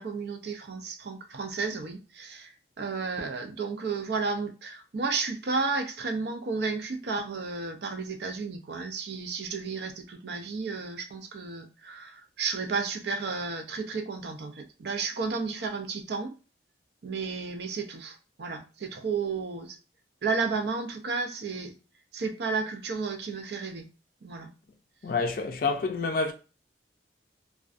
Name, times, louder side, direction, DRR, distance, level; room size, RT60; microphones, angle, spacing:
voice 1, 0.0-16.3 17.0-19.8 20.2-21.7 22.1-23.9 24.2-24.5, right 4 dB, 65° right, 0.5 m, -32 dB
voice 2, 25.0-26.3, left 4 dB, 50° left, 0.4 m, -28 dB
2.4 x 2.2 x 2.4 m
head